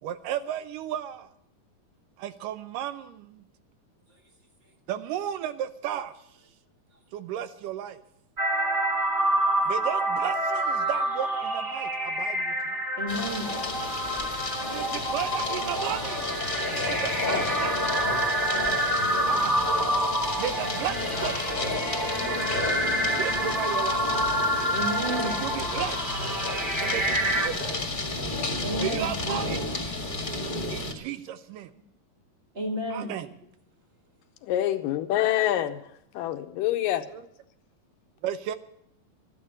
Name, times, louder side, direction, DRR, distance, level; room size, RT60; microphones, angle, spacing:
voice 1, 0.0-1.3 2.2-3.4 4.9-6.2 7.1-8.0 9.7-12.7 14.6-16.4 16.8-17.8 19.3-19.6 20.4-21.8 23.1-24.1 25.1-26.2 26.8-27.8 28.8-30.0 30.7-31.7 32.9-33.3 38.2-38.6, right 10 dB, 80° right, 11 dB, 2.1 m, -34 dB
sound 1, 8.4-27.5, right 1 dB, 20° right, 1.5 m, -28 dB
voice 2, 13.0-13.5 24.7-25.4 28.6-29.1 32.5-33.2, equal, 45° right, 3 dB, 0.7 m, -32 dB
sound 2, 13.1-30.9, left 2 dB, 25° left, 1.1 m, -31 dB
voice 3, 34.4-35.8 36.1-37.0, left 13 dB, 75° left, 9 dB, 2.4 m, -26 dB
13.0 x 10.0 x 8.7 m, 0.73 s
omnidirectional pair, 4.1 m